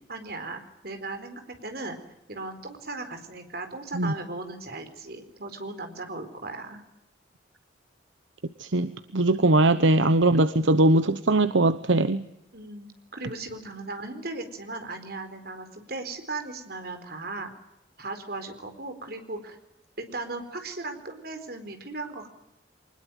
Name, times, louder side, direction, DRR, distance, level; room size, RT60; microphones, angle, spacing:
voice 1, 0.1-2.0 2.3-6.8 9.3-9.5 12.5-17.5 18.0-19.6 20.0-22.3, right 3 dB, 55° right, 7 dB, 4.3 m, -37 dB
voice 2, 8.6-12.3, right 2 dB, 80° right, 12 dB, 1.0 m, -21 dB
24.5 x 20.5 x 9.2 m, 0.86 s
head